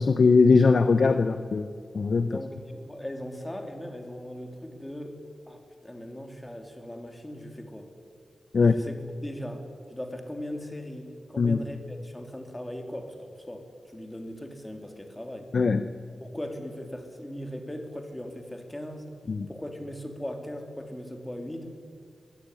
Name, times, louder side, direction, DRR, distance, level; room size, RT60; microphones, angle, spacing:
voice 1, 0.0-1.7 1.9-2.3 8.5-8.7 11.4-11.6 15.5-15.8 19.3-19.5, left 4 dB, 55° left, 9 dB, 0.9 m, -20 dB
voice 2, 2.2-7.9 8.6-15.5 16.2-19.2 19.5-21.8, equal, 10° left, 4 dB, 3.2 m, -39 dB
23.5 x 16.5 x 10.0 m, 2.1 s
wide cardioid pair, 105°, 0 cm